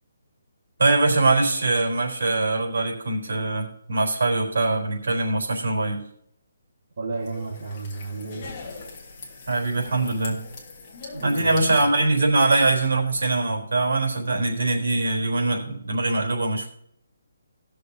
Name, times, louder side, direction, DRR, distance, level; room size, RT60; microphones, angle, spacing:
voice 1, 0.8-6.0 9.5-10.4 11.2-16.7, right 2 dB, 80° right, 1 dB, 3.8 m, -22 dB
voice 2, 7.0-8.4 11.1-11.8, right 3 dB, 45° right, -2 dB, 1.6 m, -33 dB
sound 1, 7.1-12.7, left 3 dB, 20° left, 1.7 m, -41 dB
20.0 x 6.6 x 2.8 m, 0.71 s
hypercardioid pair, 180°, 0 cm